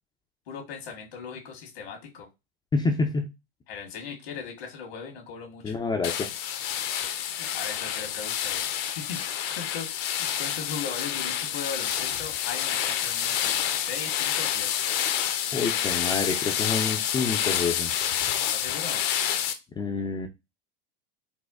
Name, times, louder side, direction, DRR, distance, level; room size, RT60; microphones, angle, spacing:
voice 1, 0.5-2.3 3.7-5.8 7.2-9.2 9.5-14.8 18.5-19.0, left 6 dB, 80° left, 1 dB, 1.4 m, -39 dB
voice 2, 2.7-3.3 5.6-6.2 15.5-17.9 19.8-20.3, left 4 dB, 15° left, 3 dB, 0.4 m, -27 dB
sound 1, 6.0-19.5, left 10 dB, 60° left, 0.6 m, -28 dB
4.2 x 2.2 x 2.3 m, 0.24 s
hypercardioid pair, 95°, 30 cm